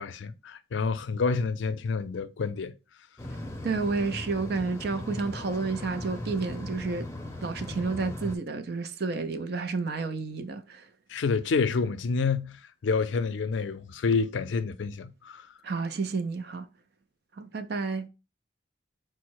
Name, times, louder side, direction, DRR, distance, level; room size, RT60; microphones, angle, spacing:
voice 1, 0.0-2.7 11.1-15.5, left 4 dB, 80° left, 0.4 m, -28 dB
sound 1, 3.2-8.4, left 1 dB, 15° left, 0.6 m, -38 dB
voice 2, 3.6-7.1 7.4-10.8 15.6-16.7 17.4-18.1, right 4 dB, 60° right, 0.5 m, -30 dB
4.6 x 2.1 x 4.6 m
head